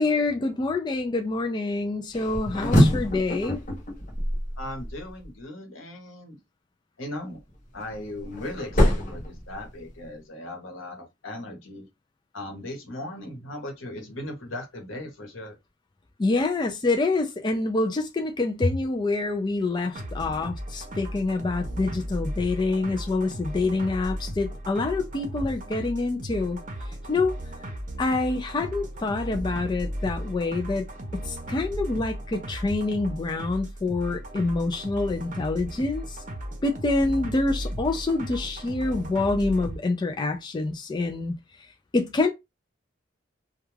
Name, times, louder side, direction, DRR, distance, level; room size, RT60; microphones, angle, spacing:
voice 1, 0.0-3.6 16.2-26.6 27.1-27.4 28.0-30.9 31.1-36.2 36.6-41.3 41.9-42.3, left 3 dB, 20° left, 0.3 m, -26 dB
sound 1, 2.1-5.3 7.5-10.1, equal, 40° left, 0.8 m, -25 dB
voice 2, 4.6-6.4 7.0-7.4 7.7-11.9 12.3-15.6, left 1 dB, 85° left, 1.0 m, -38 dB
sound 2, 19.9-39.8, right 1 dB, 40° right, 0.6 m, -35 dB
2.3 x 2.2 x 3.1 m
head